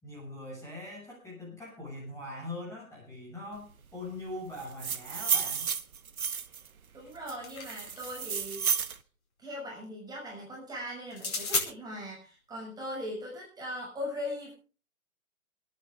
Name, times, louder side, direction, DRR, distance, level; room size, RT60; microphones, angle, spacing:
voice 1, 0.0-5.7, left 1 dB, 5° left, -4 dB, 6.6 m, -42 dB
sound 1, 4.6-6.7 7.3-9.0, right 7 dB, 85° right, 1.2 m, -31 dB
voice 2, 6.9-8.7 9.4-14.5, left 1 dB, 10° right, -3 dB, 6.9 m, -39 dB
sound 2, 7.1-8.4 11.1-11.7, left 3 dB, 80° left, 4.9 m, -34 dB
28.0 x 10.0 x 3.6 m, 0.36 s
hypercardioid pair, 140°, 42 cm